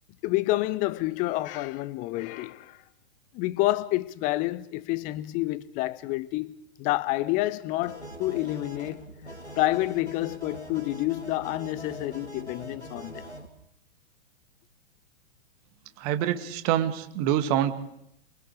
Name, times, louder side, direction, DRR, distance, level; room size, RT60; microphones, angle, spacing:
voice 1, 0.2-2.8 3.3-9.0 9.6-13.3, left 17 dB, 25° left, 0.7 m, -28 dB
sound 1, 7.8-13.5, right 1 dB, 85° left, 2.8 m, -43 dB
voice 2, 16.0-17.7, right 11 dB, 35° right, 2.0 m, -26 dB
28.0 x 23.5 x 4.9 m
figure-of-eight pair, 110°, 33 cm